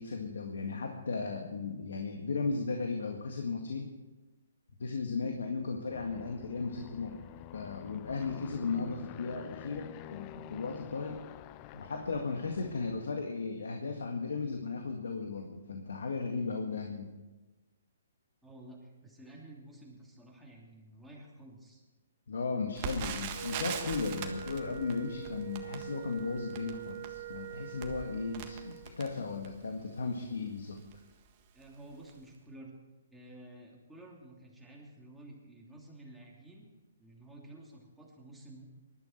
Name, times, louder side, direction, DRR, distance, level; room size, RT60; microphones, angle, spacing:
voice 1, 0.0-3.9 4.8-7.2 7.5-11.2 11.7-17.1 22.3-30.8, left 4 dB, 80° left, 3 dB, 1.9 m, -36 dB
Aircraft, 5.9-13.2, left 15 dB, 25° left, 0.4 m, -49 dB
voice 2, 18.4-21.8 31.5-32.7 33.1-36.6 37.0-38.6, right 1 dB, ahead, -4 dB, 2.8 m, -52 dB
Crackle, 22.8-29.7 30.3-30.4 30.7-31.0 31.6-31.8 32.1-32.2, right 7 dB, 35° right, 1.5 m, -42 dB
Wind instrument woodwind instrument, 23.3-28.9, right 8 dB, 80° right, 1.9 m, -44 dB
20.0 x 12.0 x 4.5 m, 1.1 s
hypercardioid pair, 155°, 0 cm